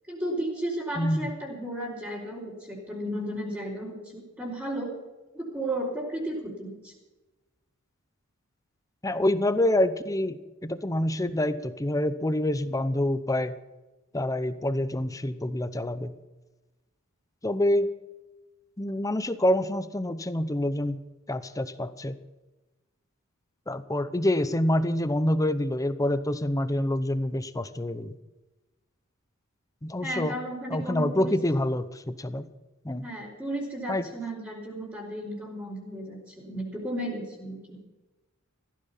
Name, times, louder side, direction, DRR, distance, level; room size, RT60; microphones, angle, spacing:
voice 1, 0.1-4.9 5.3-6.9 30.0-31.4 33.0-37.8, right 1 dB, 10° right, -6 dB, 4.2 m, -34 dB
voice 2, 1.0-1.3 9.0-13.6 14.1-16.2 17.4-17.9 18.8-21.0 21.3-22.2 23.7-28.2 29.8-30.3 30.7-32.5 32.8-33.1 33.9-34.1, left 1 dB, 15° left, 13 dB, 0.7 m, -27 dB
15.5 x 13.5 x 5.7 m, 1.1 s
head